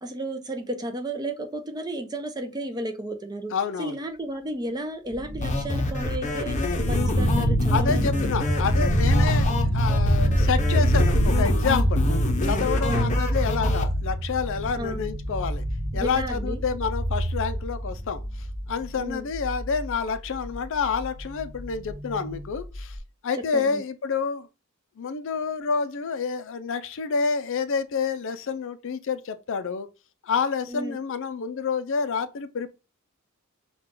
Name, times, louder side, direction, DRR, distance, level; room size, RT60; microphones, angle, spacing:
voice 1, 0.0-3.5 3.8-8.2 12.9-13.2 14.8-15.0 15.9-16.6 19.0-19.3 23.5-23.8 30.7-31.0, right 1 dB, 20° right, 0.6 m, -33 dB
voice 2, 3.5-4.0 7.7-12.1 12.4-15.6 15.9-18.2 18.7-23.0 23.2-24.5 25.0-29.9 30.2-32.7, left 5 dB, 65° left, 0.5 m, -28 dB
sound 1, 5.1-23.0, equal, 15° left, 1.1 m, -26 dB
sound 2, 5.4-13.8, left 3 dB, 35° left, 0.8 m, -29 dB
5.7 x 2.3 x 3.7 m
head